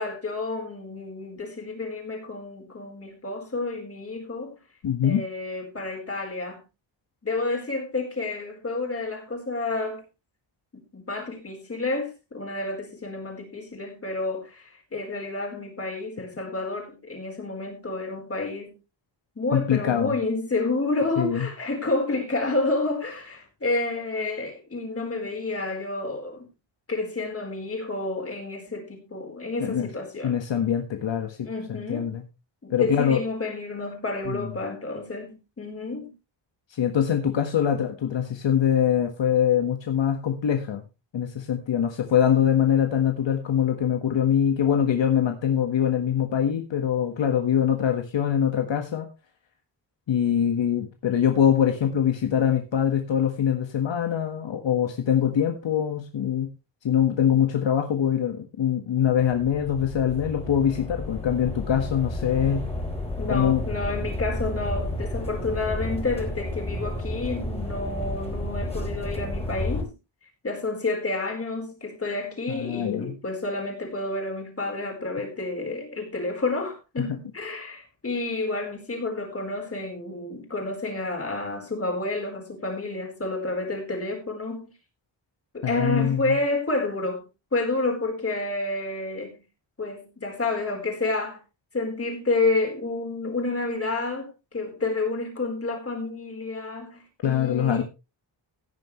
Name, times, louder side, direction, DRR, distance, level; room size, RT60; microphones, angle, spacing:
voice 1, 0.0-4.6 5.0-6.6 7.2-10.0 10.7-18.7 19.4-26.5 26.9-30.4 31.4-32.1 32.6-36.1 63.2-69.9 70.4-84.7 85.5-89.4 89.8-91.4 91.7-97.8, left 2 dB, 30° left, 4.2 m, -30 dB
voice 2, 4.8-5.2 19.5-20.2 21.2-21.5 29.6-29.9 30.2-32.2 32.7-33.2 34.3-34.5 36.7-40.8 41.1-49.1 50.1-56.5 56.8-62.6 63.3-63.6 72.5-73.2 85.6-86.4 97.2-97.8, left 9 dB, 80° left, 1.6 m, -23 dB
sound 1, 59.1-69.8, left 1 dB, 15° left, 3.6 m, -31 dB
16.5 x 9.6 x 3.2 m
wide cardioid pair, 165°, 44 cm